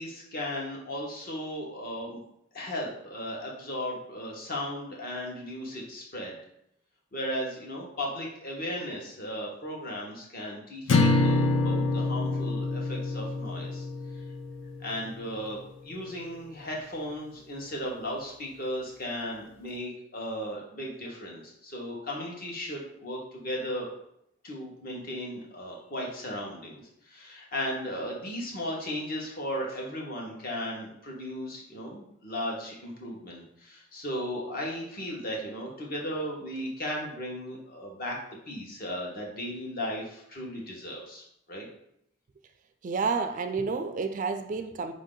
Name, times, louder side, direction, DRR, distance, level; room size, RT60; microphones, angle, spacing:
voice 1, 0.0-2.2 2.5-6.3 7.1-13.9 14.8-15.6 15.8-23.9 24.4-38.2 38.5-41.7, equal, 50° left, -2 dB, 1.0 m, -36 dB
sound 1, 10.9-15.2, left 2 dB, 70° left, 0.5 m, -26 dB
voice 2, 42.8-44.9, right 4 dB, 40° right, 8 dB, 0.3 m, -30 dB
5.1 x 2.7 x 3.7 m, 0.74 s
head